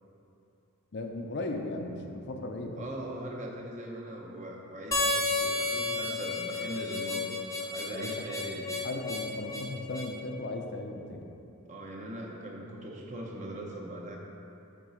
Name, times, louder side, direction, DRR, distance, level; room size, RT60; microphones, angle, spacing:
voice 1, 0.9-2.8 7.9-8.3 8.8-11.3, left 2 dB, 50° left, 3 dB, 0.5 m, -37 dB
voice 2, 2.8-8.7 11.7-14.2, right 1 dB, 35° right, -1 dB, 0.8 m, -40 dB
Harmonica, 4.9-10.1, left 2 dB, 15° left, 0.7 m, -32 dB
8.3 x 4.0 x 4.9 m, 2.7 s
head